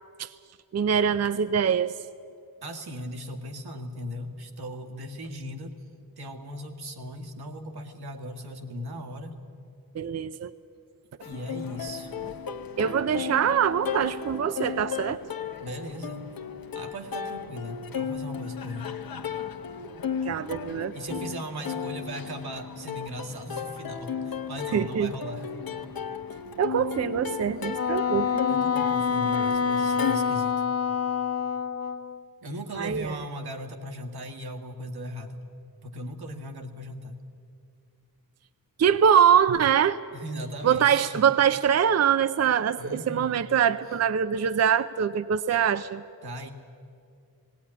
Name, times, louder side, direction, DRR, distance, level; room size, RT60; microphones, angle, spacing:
voice 1, 0.7-2.0 9.9-10.5 12.8-15.2 20.3-21.2 24.7-25.1 26.6-28.3 32.8-33.2 38.8-40.0 40.6-46.0, right 8 dB, 45° right, 13 dB, 0.5 m, -23 dB
voice 2, 2.6-5.8 6.2-9.4 11.2-12.1 15.6-16.3 16.7-18.9 20.9-25.5 28.5-30.6 32.4-35.4 35.8-37.3 40.1-41.2 42.8-43.4 46.2-46.5, equal, 85° right, 4 dB, 2.0 m, -38 dB
Plucked string instrument, 11.2-30.2, left 7 dB, 70° left, 1.0 m, -35 dB
Wind instrument woodwind instrument, 27.7-32.2, left 6 dB, 40° left, 0.5 m, -26 dB
18.5 x 17.5 x 9.8 m, 2.4 s
wide cardioid pair, 130°, 37 cm